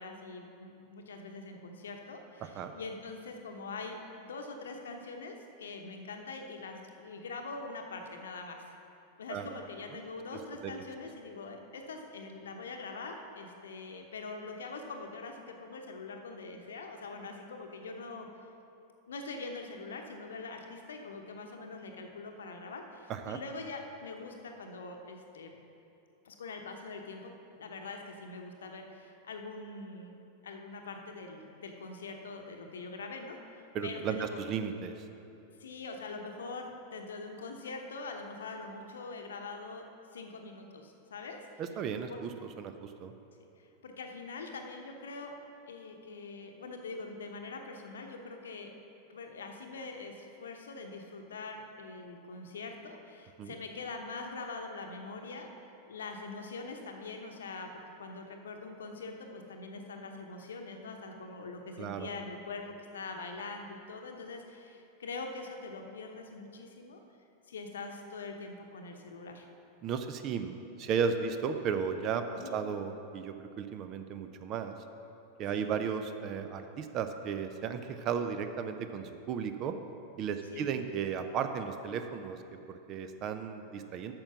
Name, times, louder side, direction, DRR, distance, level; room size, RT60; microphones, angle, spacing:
voice 1, 0.0-8.7 9.2-18.3 19.1-25.5 26.2-27.3 27.6-30.1 30.4-34.4 35.6-39.8 40.1-41.4 42.1-42.2 43.6-45.3 45.7-48.7 49.1-67.0 67.5-69.5 72.3-72.6 75.5-75.7 80.5-80.7, left 3 dB, 65° left, 4 dB, 0.9 m, -43 dB
voice 2, 2.4-2.7 9.3-9.5 9.9-10.0 10.6-10.7 23.1-23.4 33.7-35.0 41.6-43.1 53.4-53.5 61.8-62.1 69.8-74.8 75.4-79.7 80.2-82.4 82.7-84.1, right 6 dB, 35° right, 8 dB, 0.5 m, -35 dB
8.7 x 6.2 x 5.8 m, 2.7 s
figure-of-eight pair, 90°, 0 cm